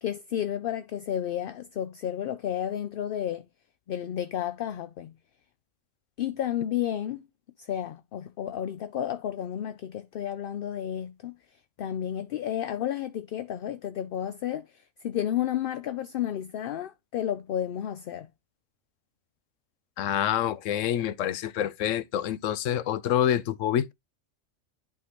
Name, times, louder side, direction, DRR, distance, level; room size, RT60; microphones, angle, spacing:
voice 1, 0.0-3.4 3.9-5.1 6.2-7.3 7.6-11.4 11.8-18.3, left 10 dB, 60° left, 0.6 m, -32 dB
voice 2, 20.0-23.9, left 10 dB, 85° left, 1.0 m, -27 dB
11.0 x 3.7 x 3.0 m
omnidirectional pair, 1.3 m